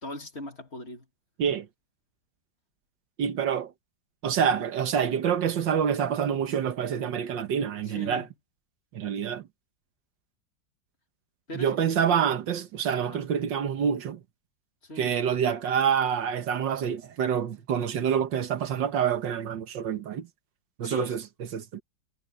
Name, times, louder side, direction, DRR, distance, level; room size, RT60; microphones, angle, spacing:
voice 1, 0.0-1.1 7.9-8.3 11.5-11.9 13.0-13.2 14.8-15.2 20.8-21.2, equal, 35° left, 2.7 m, -39 dB
voice 2, 3.2-3.7 4.2-8.3 8.9-9.4 11.5-14.2 15.0-20.3 20.8-21.2 21.5-21.8, right 8 dB, 80° right, 1.9 m, -27 dB
omnidirectional pair, 1.9 m